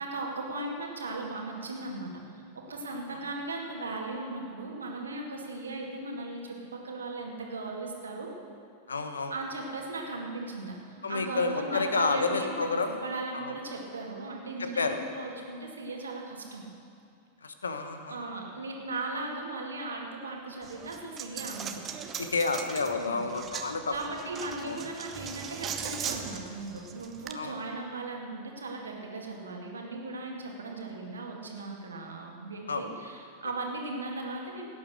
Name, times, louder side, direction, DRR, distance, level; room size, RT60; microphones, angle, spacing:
voice 1, 0.0-8.3 9.3-12.6 12.9-16.6 18.1-21.8 23.0-23.3 23.9-34.7, right 2 dB, 70° right, 0 dB, 2.1 m, -37 dB
voice 2, 8.9-9.3 11.0-13.0 13.3-13.6 14.6-15.0 17.4-18.3 22.2-24.0 24.6-24.8 27.3-27.5 32.7-32.9, left 4 dB, 75° left, 7 dB, 1.1 m, -30 dB
Coin (dropping), 20.6-27.3, right 7 dB, 25° right, 0.9 m, -39 dB
17.5 x 9.5 x 6.6 m, 2.4 s
figure-of-eight pair, 90°, 0 cm